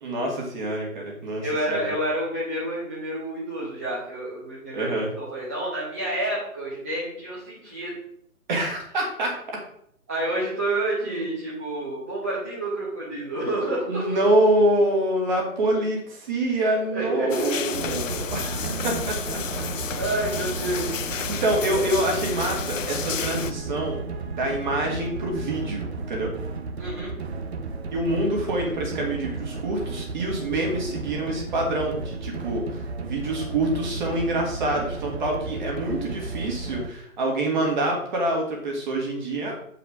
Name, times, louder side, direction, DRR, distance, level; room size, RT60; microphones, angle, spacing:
voice 1, 0.0-1.9 4.7-5.1 8.5-9.3 11.1-11.3 13.9-19.4 20.7-21.0 21.3-26.3 27.9-39.5, right 1 dB, 35° right, -1 dB, 2.2 m, -26 dB
voice 2, 1.4-7.9 10.1-14.2 16.9-17.7 20.0-20.9 26.8-27.1, right 1 dB, 10° right, -8 dB, 0.7 m, -29 dB
sound 1, 17.3-23.5, left 7 dB, 60° left, 0.7 m, -32 dB
sound 2, 17.7-36.9, right 4 dB, 50° right, 0.8 m, -33 dB
8.0 x 4.9 x 5.0 m, 0.69 s
hypercardioid pair, 160°, 43 cm